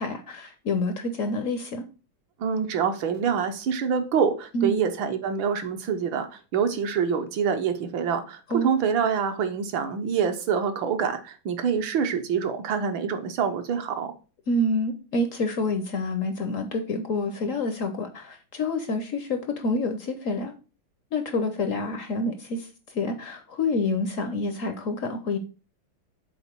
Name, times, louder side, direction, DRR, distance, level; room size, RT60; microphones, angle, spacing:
voice 1, 0.0-1.8 4.5-4.8 8.5-8.8 14.5-20.5 21.1-25.4, left 2 dB, 70° left, 8 dB, 0.7 m, -28 dB
voice 2, 2.4-14.1, right 6 dB, 75° right, 7 dB, 1.6 m, -26 dB
6.9 x 4.1 x 4.4 m, 0.34 s
omnidirectional pair, 2.2 m